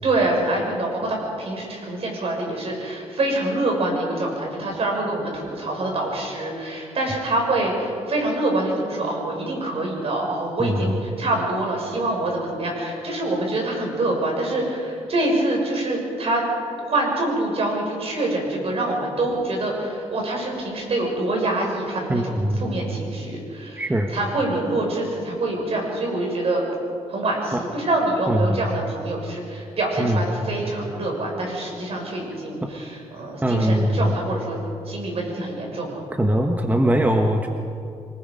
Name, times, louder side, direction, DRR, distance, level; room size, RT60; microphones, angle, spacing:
voice 1, 0.0-16.4 16.9-26.6 27.1-34.6 34.9-36.0, right 2 dB, 60° right, 0 dB, 6.5 m, -25 dB
voice 2, 10.6-10.9 22.1-22.7 23.8-24.1 27.5-27.6 28.3-28.6 30.0-30.2 32.6-32.7 33.4-34.2 36.2-37.5, right 1 dB, 15° right, 3 dB, 1.4 m, -21 dB
26.0 x 20.0 x 5.4 m, 2.6 s
cardioid pair, 85°, 12 cm